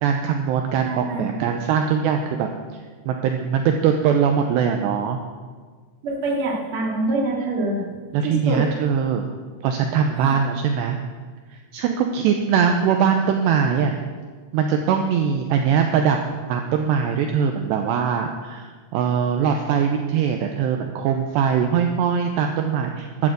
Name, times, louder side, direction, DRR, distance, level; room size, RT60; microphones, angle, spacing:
voice 1, 0.0-5.2 8.1-9.3 9.6-11.0 11.5-14.0 14.5-16.2 16.5-23.3, right 7 dB, 80° right, 4 dB, 2.6 m, -21 dB
voice 2, 0.8-1.3 6.0-7.8 8.2-8.6 10.2-10.3, right 2 dB, 35° right, -2 dB, 2.3 m, -25 dB
12.5 x 8.7 x 8.1 m, 1.5 s
omnidirectional pair, 5.5 m